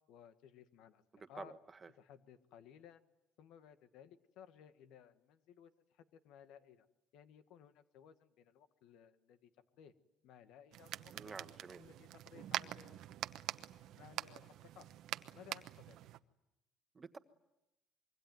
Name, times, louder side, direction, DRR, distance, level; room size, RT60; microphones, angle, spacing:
voice 1, 0.1-1.0 1.3-1.5 2.0-3.0 3.4-6.9 7.1-9.9 10.2-11.3 11.8-13.2 14.0-14.9 15.3-16.0, left 9 dB, 75° left, 11 dB, 1.6 m, -59 dB
voice 2, 1.1-1.9 11.1-11.8 16.9-17.2, right 4 dB, 25° right, 10 dB, 1.4 m, -50 dB
sound 1, 10.7-16.2, right 13 dB, 70° right, 1.0 m, -45 dB
25.5 x 23.0 x 9.3 m, 0.91 s
cardioid pair, 130°, 0 cm